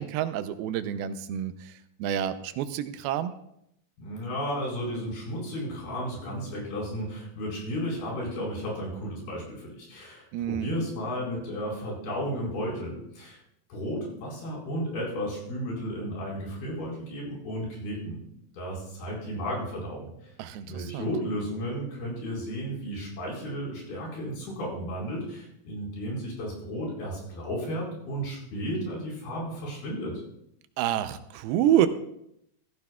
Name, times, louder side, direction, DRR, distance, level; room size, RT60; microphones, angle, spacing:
voice 1, 0.0-3.3 10.3-10.7 20.4-21.1 30.8-31.9, right 11 dB, 85° right, 11 dB, 2.6 m, -28 dB
voice 2, 4.0-13.4 13.7-18.2 18.5-20.1 20.7-30.1, equal, 80° left, -3 dB, 6.5 m, -33 dB
15.5 x 14.5 x 2.3 m, 0.77 s
omnidirectional pair, 4.3 m